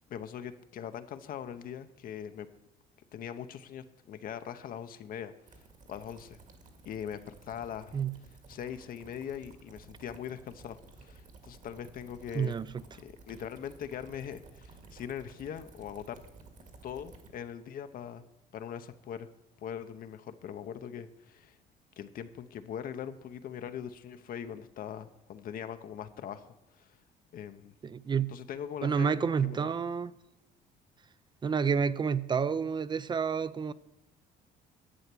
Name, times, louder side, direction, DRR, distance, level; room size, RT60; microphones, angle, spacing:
voice 1, 0.1-2.5 3.1-5.6 5.9-6.4 6.8-8.0 8.5-12.6 13.0-16.2 16.8-18.2 18.5-19.3 19.6-21.6 22.0-26.5 26.7-27.0 27.3-27.7 28.3-29.7, left 9 dB, 60° left, 0.8 m, -41 dB
sound 1, 5.5-17.3, right 3 dB, 50° right, 2.0 m, -54 dB
voice 2, 12.3-12.8 27.8-28.4 28.8-30.1 31.4-33.7, right 6 dB, 25° right, 0.5 m, -29 dB
11.0 x 7.9 x 6.1 m
cardioid pair, 110°, 17 cm